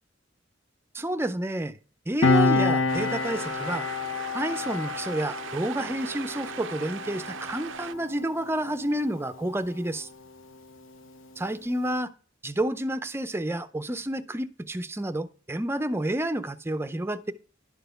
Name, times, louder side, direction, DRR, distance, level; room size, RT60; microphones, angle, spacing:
voice 1, 0.9-1.8 2.1-3.9 4.3-10.1 11.4-12.1 12.4-17.3, right 1 dB, 10° right, 0.5 m, -30 dB
Piano, 2.2-9.2 9.5-9.7, left 3 dB, 85° left, 0.8 m, -28 dB
sound 1, 2.9-7.9, right 8 dB, 75° right, 0.4 m, -39 dB
11.5 x 4.1 x 6.6 m
head